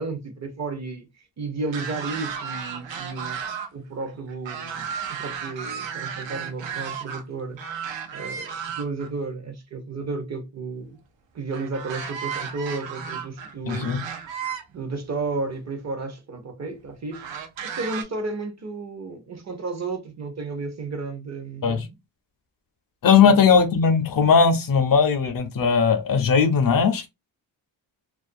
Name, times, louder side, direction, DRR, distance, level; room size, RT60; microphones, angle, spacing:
voice 1, 0.0-3.4 3.7-7.6 8.1-11.0 11.3-14.1 14.7-17.2 17.6-22.0 23.2-23.6, right 3 dB, 40° right, 0.6 m, -33 dB
sound 1, 1.7-3.7 4.0-7.2 7.6-9.1 11.5-14.6 15.6-15.7 17.1-18.0, right 7 dB, 85° right, 0.7 m, -34 dB
voice 2, 13.7-14.0 21.6-21.8 23.0-27.1, left 6 dB, 50° left, 0.5 m, -18 dB
2.4 x 2.2 x 2.5 m
cardioid pair, 100°, 44 cm